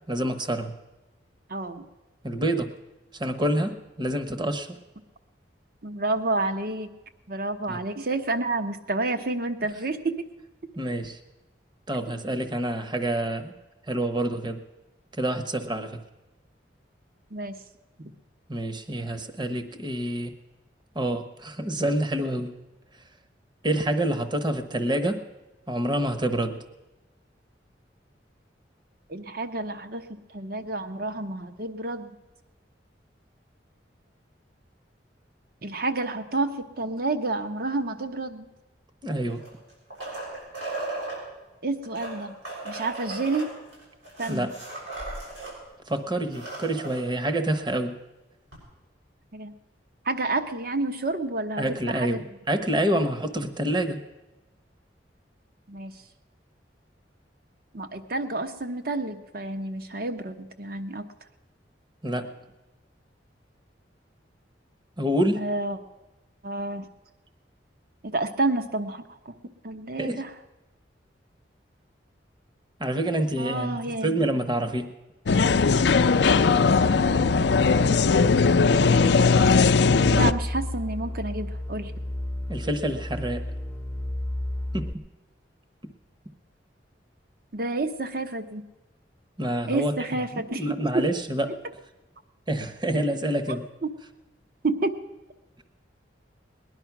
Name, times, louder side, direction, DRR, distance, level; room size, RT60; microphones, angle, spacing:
voice 1, 0.1-0.7 2.2-2.7 3.1-4.8 7.7-7.8 10.8-11.2 11.9-13.5 13.9-14.6 15.1-16.0 18.5-20.3 20.9-22.6 23.6-25.2 25.7-26.6 39.0-39.4 44.3-44.5 45.9-48.0 51.6-54.0 62.0-62.3 65.0-65.5 70.0-70.2 72.8-74.9 82.5-83.5 84.7-85.0 85.8-85.9 89.4-89.9 90.3-91.6 92.5-93.7, right 1 dB, 25° right, 8 dB, 1.0 m, -27 dB
voice 2, 1.5-1.9 5.8-6.9 7.3-10.3 17.3-17.6 18.0-18.1 29.1-32.2 35.6-38.5 41.6-42.4 42.6-43.5 44.2-44.5 49.3-49.5 50.0-52.2 55.7-55.9 57.7-61.1 65.4-65.8 66.4-66.9 68.0-69.4 69.6-70.3 73.4-74.2 80.1-81.9 87.5-88.6 89.7-91.0 93.8-93.9 94.6-95.0, right 2 dB, 55° right, 8 dB, 1.0 m, -29 dB
sound 1, 39.3-41.2 41.8-45.5 45.9-46.0 46.2-47.0 48.5-48.6, right 2 dB, 85° right, 6.7 m, -36 dB
sound 2, 75.3-80.3, left 4 dB, 65° left, 0.5 m, -19 dB
sound 3, 79.0-84.9, left 1 dB, 10° left, 0.7 m, -32 dB
19.5 x 10.5 x 5.9 m, 1.1 s
head